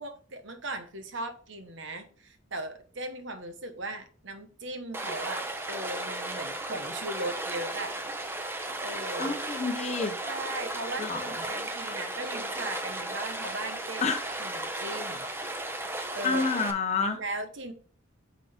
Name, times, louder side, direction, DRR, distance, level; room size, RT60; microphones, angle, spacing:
voice 1, 0.0-8.0 8.8-9.4 10.3-14.1 14.4-15.3 16.1-16.4 17.2-17.7, right 2 dB, 70° right, 7 dB, 1.0 m, -38 dB
Stream, 4.9-16.7, right 1 dB, 10° right, 0.7 m, -35 dB
voice 2, 9.2-10.1 11.0-11.2 14.0-14.2 16.2-17.2, left 4 dB, 35° left, 4 dB, 0.7 m, -28 dB
8.9 x 3.8 x 3.6 m, 0.42 s
head